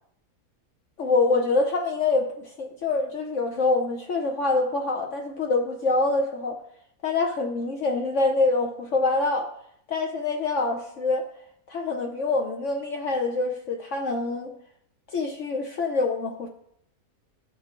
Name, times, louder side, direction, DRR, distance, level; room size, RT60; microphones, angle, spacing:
voice 1, 1.0-6.6 7.0-9.5 9.9-11.2 11.7-14.5 15.1-16.5, left 3 dB, 60° left, 2 dB, 1.0 m, -25 dB
12.5 x 5.6 x 2.5 m, 0.70 s
omnidirectional pair, 1.6 m